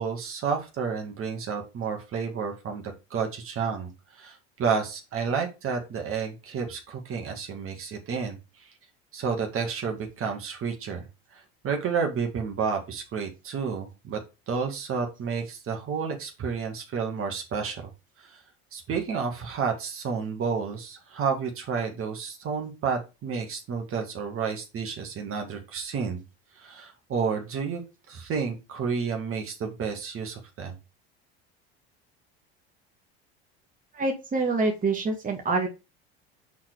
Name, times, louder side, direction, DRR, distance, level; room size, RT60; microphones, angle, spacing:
voice 1, 0.0-2.8 3.1-8.7 9.1-14.2 14.5-17.9 18.2-18.4 18.7-26.2 26.6-27.8 28.1-30.8, right 6 dB, 45° right, 3 dB, 2.2 m, -31 dB
voice 2, 33.9-35.7, right 3 dB, 25° right, 1 dB, 1.9 m, -26 dB
5.9 x 4.2 x 4.7 m, 0.27 s
hypercardioid pair, 85°, 31 cm